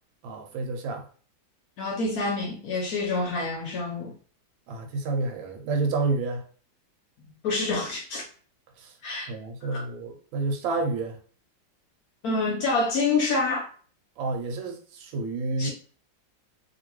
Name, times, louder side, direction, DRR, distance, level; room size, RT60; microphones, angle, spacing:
voice 1, 0.2-1.1 4.7-6.4 8.8-8.9 9.3-11.2 14.2-15.7, right 3 dB, 85° right, 1.4 m, -29 dB
voice 2, 1.8-4.1 7.4-8.2 9.0-9.3 9.7-9.8 12.2-13.7 15.6-15.7, left 3 dB, 60° left, 1.1 m, -27 dB
2.9 x 2.8 x 2.9 m
omnidirectional pair, 2.1 m